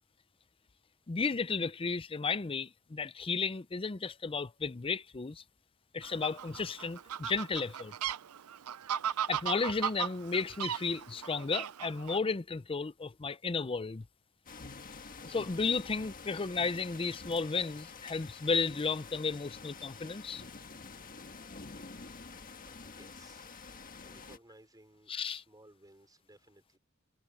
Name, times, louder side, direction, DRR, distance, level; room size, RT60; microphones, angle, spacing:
voice 1, 1.1-5.4 5.9-7.9 9.3-14.1 15.2-20.4 25.1-25.4, left 4 dB, 25° left, 0.5 m, -33 dB
Fowl, 6.0-12.2, right 9 dB, 85° right, 0.5 m, -37 dB
sound 1, 14.5-24.4, left 4 dB, 40° left, 1.6 m, -48 dB
voice 2, 22.6-23.5 24.0-26.8, right 1 dB, 20° right, 5.2 m, -60 dB
head